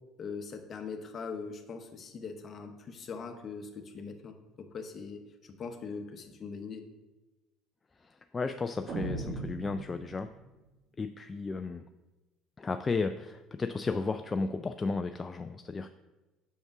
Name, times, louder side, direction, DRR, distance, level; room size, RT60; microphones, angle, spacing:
voice 1, 0.2-6.8, left 5 dB, 45° left, 7 dB, 0.9 m, -41 dB
voice 2, 8.0-10.3 11.0-11.8 12.6-15.9, left 4 dB, 25° left, 8 dB, 0.3 m, -34 dB
sound 1, 8.9-10.5, right 3 dB, 55° right, 1.5 m, -38 dB
5.9 x 5.3 x 4.8 m, 1.1 s
hypercardioid pair, 75°, 0 cm